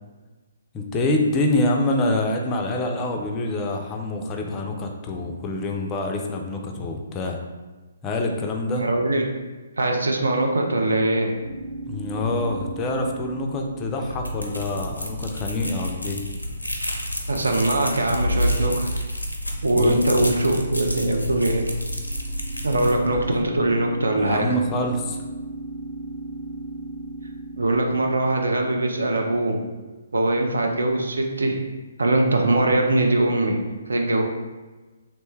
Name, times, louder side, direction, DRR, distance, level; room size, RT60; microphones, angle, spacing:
voice 1, 0.7-7.4 8.0-8.9 11.8-16.2 19.7-19.9 20.2-20.4 24.2-25.2, left 2 dB, 20° left, 2 dB, 0.3 m, -26 dB
voice 2, 8.7-9.3 9.8-11.3 14.8-14.9 17.3-18.9 19.6-21.7 22.6-24.5 27.6-29.6 30.1-31.6 32.0-33.6 33.9-34.2, right 2 dB, 75° right, 2 dB, 0.4 m, -22 dB
sound 1, 11.4-15.5 21.5-28.5, right 2 dB, ahead, 0.9 m, -37 dB
sound 2, 14.0-23.4, equal, 90° left, 0.4 m, -29 dB
3.0 x 2.1 x 3.2 m, 1.2 s
figure-of-eight pair, 130°, 0 cm